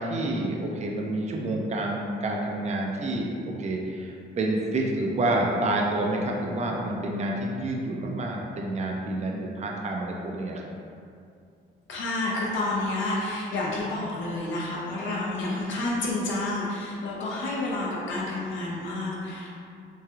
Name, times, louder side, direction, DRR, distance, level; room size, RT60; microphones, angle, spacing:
voice 1, 0.0-10.7, right 2 dB, 35° right, -1 dB, 0.4 m, -28 dB
voice 2, 11.9-19.5, left 2 dB, 70° left, -5 dB, 0.6 m, -29 dB
3.1 x 2.7 x 2.3 m, 2.4 s
cardioid pair, 90°, 20 cm